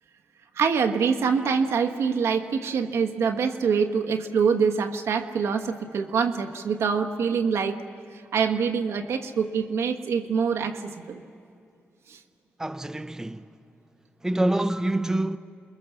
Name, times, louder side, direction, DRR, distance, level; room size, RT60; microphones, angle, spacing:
voice 1, 0.6-7.8 8.3-11.2 12.1-12.2, right 6 dB, 80° right, 1.3 m, -25 dB
voice 2, 12.6-13.5 14.2-15.4, right 1 dB, 10° right, 0.7 m, -26 dB
29.0 x 21.5 x 7.1 m
cardioid pair, 70°, 5 cm